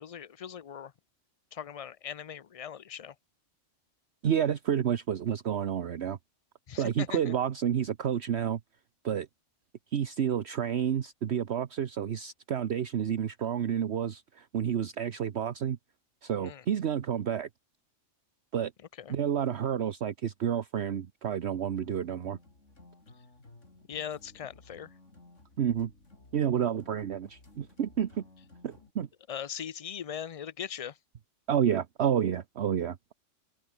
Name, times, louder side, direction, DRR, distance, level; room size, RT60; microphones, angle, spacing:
voice 1, 0.0-0.9 1.5-3.1 6.7-7.3 16.4-16.6 19.0-19.1 23.9-24.9 29.3-31.0, left 8 dB, 55° left, 0.4 m, -40 dB
voice 2, 4.2-6.2 6.8-8.6 9.0-9.3 9.9-15.8 16.2-17.5 18.5-18.7 19.1-22.4 25.6-25.9 26.3-28.2 28.6-29.1 31.5-33.1, right 9 dB, 60° right, 1.1 m, -30 dB
sound 1, 21.7-28.9, left 2 dB, 75° left, 4.9 m, -56 dB
open air
omnidirectional pair, 1.3 m